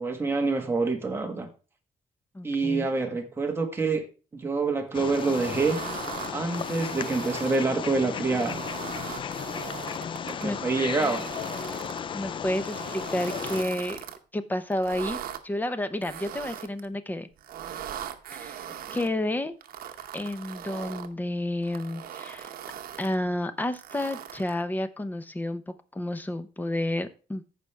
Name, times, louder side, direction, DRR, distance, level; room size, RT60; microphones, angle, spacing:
voice 1, 0.0-1.5 2.4-4.1 4.3-5.8 6.3-8.6 10.2-11.2 18.8-18.9, right 3 dB, 15° right, 3 dB, 1.6 m, -27 dB
voice 2, 2.3-2.9 10.4-10.6 12.1-14.0 14.3-15.2 15.4-17.3 18.3-18.6 18.9-19.5 20.1-22.5 23.0-27.4, left 1 dB, 10° left, 10 dB, 0.7 m, -30 dB
Wild animals, 4.9-13.6, left 7 dB, 35° left, 0.3 m, -35 dB
sound 1, 5.1-7.6 8.2-10.4 10.9-12.0 12.5-14.2 14.7-15.4 16.0-16.9 17.4-19.1 19.6-21.1 21.6-23.2 23.7-24.6, right 10 dB, 75° right, 0.9 m, -40 dB
14.5 x 5.2 x 3.3 m, 0.34 s
cardioid pair, 160°, 15 cm